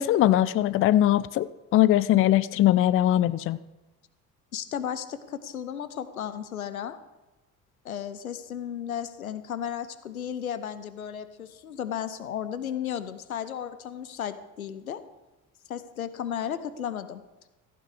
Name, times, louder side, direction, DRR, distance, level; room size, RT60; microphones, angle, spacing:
voice 1, 0.0-1.5 1.7-3.6, left 13 dB, 30° left, 18 dB, 0.5 m, -21 dB
voice 2, 4.5-7.0 7.8-15.0 15.7-17.2, left 9 dB, 80° left, 12 dB, 0.8 m, -34 dB
15.0 x 9.0 x 4.9 m, 1.1 s
figure-of-eight pair, 55°, 42 cm